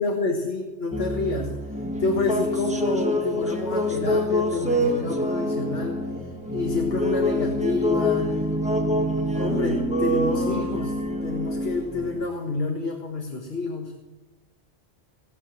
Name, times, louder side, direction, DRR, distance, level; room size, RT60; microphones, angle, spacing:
voice 1, 0.0-1.5 2.0-6.0 6.5-8.3 9.3-13.9, left 3 dB, 65° left, 2 dB, 1.7 m, -28 dB
sound 1, 0.9-12.3, equal, 5° right, 1.2 m, -26 dB
17.5 x 6.8 x 7.7 m, 1.2 s
omnidirectional pair, 1.1 m